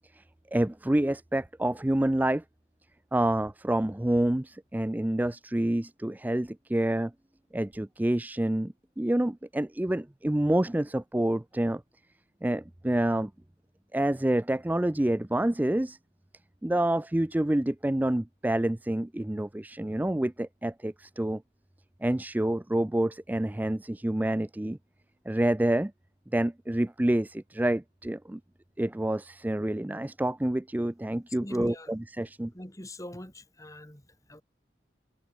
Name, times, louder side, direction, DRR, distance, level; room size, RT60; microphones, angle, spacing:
voice 1, 0.5-2.4 3.1-7.1 7.5-11.8 12.4-13.3 13.9-16.0 16.6-21.4 22.0-24.8 25.3-25.9 26.3-28.4 28.8-32.5, right 1 dB, 10° right, 0.4 m, -28 dB
voice 2, 31.3-31.9 32.5-34.4, left 1 dB, 15° left, 4.5 m, -43 dB
head